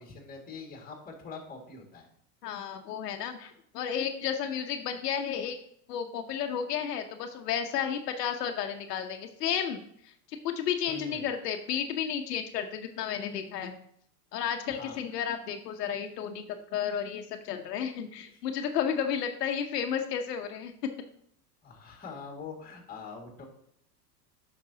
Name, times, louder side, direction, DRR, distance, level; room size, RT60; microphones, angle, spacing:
voice 1, 0.0-2.1 10.9-11.3 14.7-15.0 18.3-18.4 21.6-23.5, left 5 dB, 20° left, 2 dB, 2.1 m, -44 dB
voice 2, 2.4-5.6 5.9-13.7 14.3-20.7, left 8 dB, 80° left, 5 dB, 0.9 m, -32 dB
9.0 x 6.0 x 2.8 m, 0.68 s
hypercardioid pair, 120°, 47 cm